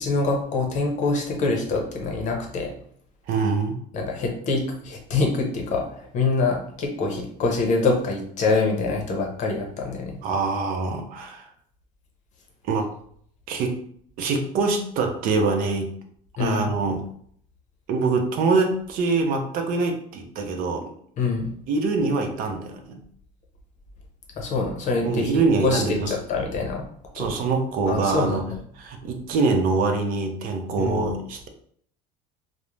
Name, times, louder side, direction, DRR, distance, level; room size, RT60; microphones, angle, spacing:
voice 1, 0.0-2.7 3.9-10.2 16.4-16.7 21.2-21.5 24.4-25.3 25.6-26.8 27.2-27.3 27.9-28.4 30.8-30.9, left 3 dB, 45° left, 1 dB, 0.7 m, -25 dB
voice 2, 3.3-3.8 10.2-11.5 12.6-12.9 13.5-13.8 14.2-15.9 16.4-17.0 17.9-20.9 21.7-23.0 25.0-26.1 27.1-28.5 28.7-31.5, right 4 dB, 50° right, 4 dB, 0.5 m, -24 dB
2.4 x 2.1 x 3.1 m, 0.62 s
cardioid pair, 140°, 18 cm